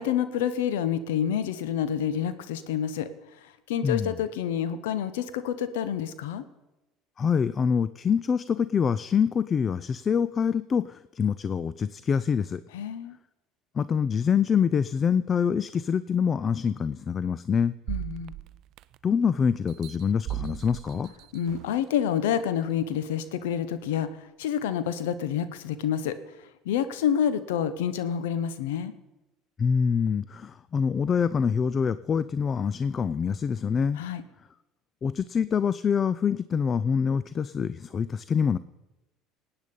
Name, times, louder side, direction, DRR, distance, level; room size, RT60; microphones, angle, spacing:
voice 1, 0.0-3.1 3.4-6.4 12.7-13.2 17.9-18.3 21.3-28.9 34.0-34.2, left 9 dB, 85° left, 13 dB, 0.9 m, -28 dB
voice 2, 7.2-12.6 13.7-17.7 19.0-21.1 29.6-34.0 35.0-38.6, left 6 dB, 35° left, 16 dB, 0.4 m, -25 dB
sound 1, 17.9-19.2 19.7-21.8 22.4-22.5, right 15 dB, 60° right, 0.4 m, -37 dB
18.0 x 9.0 x 5.4 m, 1.0 s
supercardioid pair, 85°, 0 cm